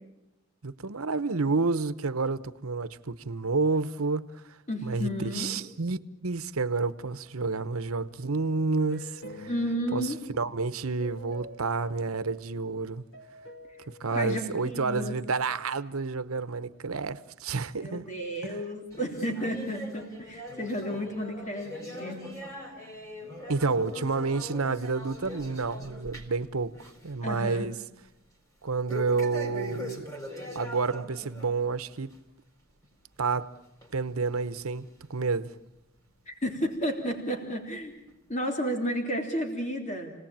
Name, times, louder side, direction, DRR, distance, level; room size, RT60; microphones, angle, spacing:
voice 1, 0.6-4.6 4.8-9.5 9.9-13.0 13.9-18.1 18.5-18.6 23.5-27.7 28.6-30.1 30.5-32.2 33.2-33.5 33.9-35.5, right 4 dB, 85° right, 1.0 m, -30 dB
voice 2, 4.7-5.6 9.5-10.2 14.1-15.2 17.8-22.3 27.2-27.7 36.3-38.0 38.3-40.1, equal, 35° left, 3.5 m, -32 dB
sound 1, 8.9-12.7 13.1-15.2, equal, 65° left, 4.2 m, -48 dB
sound 2, 18.9-26.4 26.7-27.1 27.4-27.5 28.9-31.6 32.0-32.1 32.8-32.9 33.8-33.9 34.7-34.8, equal, 15° left, 4.4 m, -41 dB
29.5 x 19.0 x 8.9 m
head